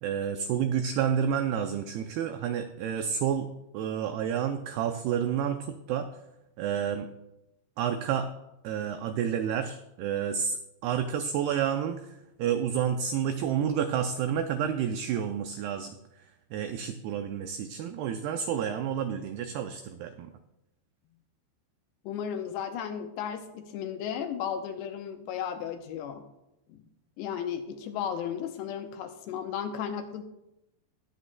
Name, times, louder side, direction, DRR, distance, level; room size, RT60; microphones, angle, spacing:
voice 1, 0.0-3.5 3.7-6.1 6.6-7.1 7.8-8.3 8.6-16.0 16.5-20.3, right 8 dB, 90° right, 7 dB, 2.2 m, -30 dB
voice 2, 22.1-26.3 26.7-26.8 27.2-30.2, left 8 dB, 80° left, 6 dB, 2.7 m, -34 dB
20.5 x 8.0 x 2.2 m, 0.90 s
omnidirectional pair, 5.2 m